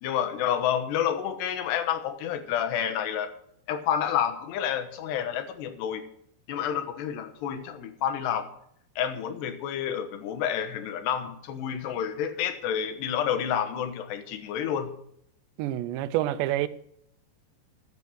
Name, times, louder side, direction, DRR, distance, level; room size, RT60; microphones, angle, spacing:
voice 1, 0.0-3.3 3.7-6.0 6.5-8.5 9.0-14.9, left 9 dB, 75° left, 3.3 m, -29 dB
voice 2, 15.6-16.7, right 14 dB, 90° right, 3.0 m, -27 dB
13.5 x 9.1 x 6.3 m
omnidirectional pair, 4.9 m